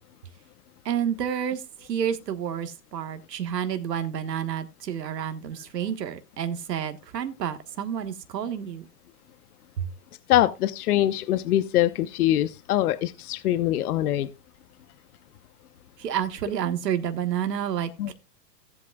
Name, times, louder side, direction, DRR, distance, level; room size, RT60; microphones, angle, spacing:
voice 1, 0.8-8.9 9.8-9.9 16.0-18.1, right 9 dB, 80° right, 9 dB, 1.5 m, -29 dB
voice 2, 10.3-14.3 18.0-18.1, left 13 dB, 65° left, 13 dB, 1.0 m, -23 dB
17.0 x 8.4 x 2.3 m, 0.24 s
hypercardioid pair, 125°, 49 cm